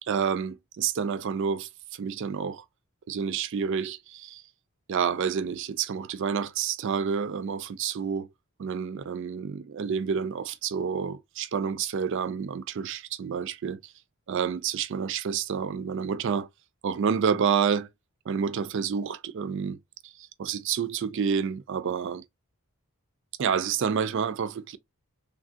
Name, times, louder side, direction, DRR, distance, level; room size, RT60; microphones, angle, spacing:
voice 1, 0.0-2.6 3.1-4.4 4.9-8.3 8.6-13.9 14.3-16.5 16.8-17.9 18.3-19.8 20.0-20.1 20.4-22.2 23.4-24.8, right 6 dB, 55° right, 0.4 m, -29 dB
3.3 x 2.4 x 2.5 m
head